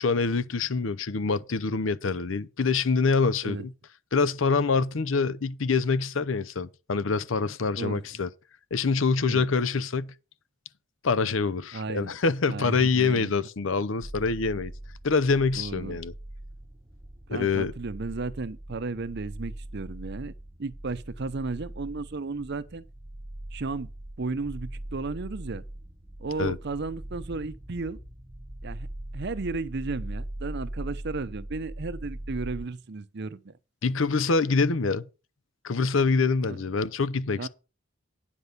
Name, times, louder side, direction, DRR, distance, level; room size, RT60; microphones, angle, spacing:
voice 1, 0.0-3.7 4.1-8.3 8.7-10.1 11.0-14.7 15.0-16.1 17.3-17.7 26.4-26.6 33.8-35.1 35.6-37.5, left 4 dB, 70° left, 0.7 m, -25 dB
voice 2, 11.7-12.1 12.5-13.3 15.5-16.0 17.3-20.3 20.6-22.8 23.5-23.9 24.2-25.6 26.2-28.0 28.6-28.9 29.1-33.5 36.4-36.7 37.4-37.5, right 3 dB, 55° right, 0.7 m, -34 dB
sound 1, 14.0-32.7, right 1 dB, 15° right, 1.0 m, -41 dB
9.9 x 5.3 x 6.7 m
head